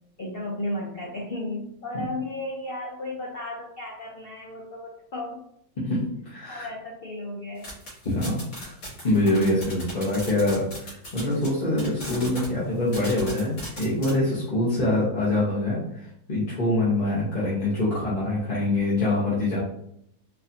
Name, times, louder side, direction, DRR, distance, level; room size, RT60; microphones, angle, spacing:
voice 1, 0.2-5.4 6.5-7.7, left 2 dB, 75° left, -3 dB, 0.5 m, -34 dB
voice 2, 5.8-6.7 8.0-8.7 9.0-19.6, left 1 dB, 35° left, -9 dB, 0.8 m, -25 dB
sound 1, 7.6-11.5 11.8-12.5 12.9-14.1, equal, 55° left, 1.8 m, -38 dB
4.1 x 2.6 x 2.7 m, 0.73 s
omnidirectional pair, 1.8 m